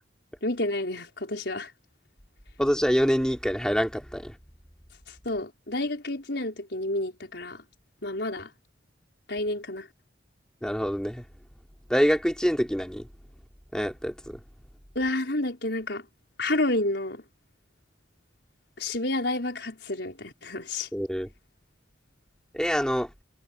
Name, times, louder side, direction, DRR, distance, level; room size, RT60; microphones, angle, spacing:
voice 1, 0.4-1.7 5.1-7.6 8.0-8.5 9.3-9.9 15.0-16.1 16.4-17.2 18.8-20.9, left 2 dB, 60° left, 5.3 m, -30 dB
voice 2, 2.6-4.3 10.6-11.2 11.9-13.1 13.7-14.4 20.9-21.3 22.5-23.1, equal, 5° left, 3.5 m, -25 dB
head